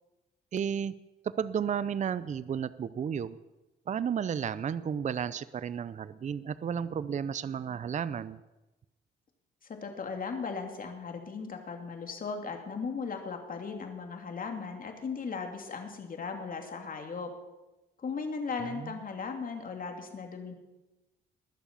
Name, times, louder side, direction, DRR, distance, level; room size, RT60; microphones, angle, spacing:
voice 1, 0.5-0.9 1.2-3.4 3.9-8.4 18.6-19.0, right 7 dB, 40° right, 16 dB, 0.5 m, -33 dB
voice 2, 9.6-17.3 18.0-20.5, left 5 dB, 45° left, 4 dB, 2.8 m, -37 dB
20.5 x 7.1 x 6.9 m, 1.0 s
cardioid pair, 90°, 20 cm